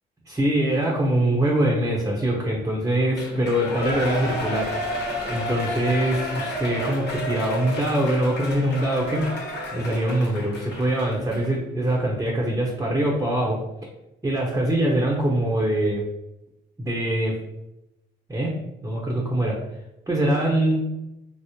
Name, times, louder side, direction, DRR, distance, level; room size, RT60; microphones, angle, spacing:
voice 1, 0.3-5.0 5.2-9.3 9.7-13.6 14.2-16.0 16.8-17.4 18.3-18.6 18.8-19.6 20.1-20.9, right 1 dB, 15° right, -2 dB, 0.8 m, -23 dB
Shout / Cheering, 3.1-11.5 11.9-12.0, left 1 dB, 60° left, 1.1 m, -31 dB
4.8 x 2.0 x 2.9 m, 0.91 s
cardioid pair, 90°, 20 cm